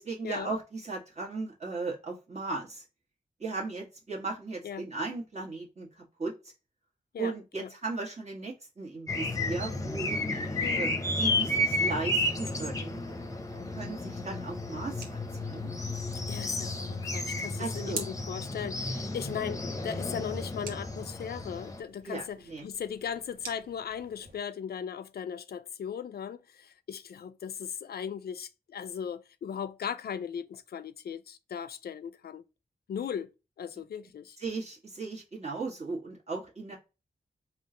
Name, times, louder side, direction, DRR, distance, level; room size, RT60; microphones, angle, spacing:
voice 1, 0.0-2.8 3.4-6.5 7.2-10.9 11.2-13.0 13.7-15.7 17.6-18.0 22.0-22.7 34.4-36.8, right 3 dB, 45° right, 1.6 m, -37 dB
sound 1, 9.1-21.8, left 1 dB, 20° left, 0.7 m, -32 dB
sound 2, 12.0-24.4, right 4 dB, 70° right, 1.1 m, -49 dB
voice 2, 16.1-32.4 32.9-33.3 33.6-34.4, left 8 dB, 85° left, 0.4 m, -38 dB
3.7 x 2.3 x 3.7 m
wide cardioid pair, 95°, 16 cm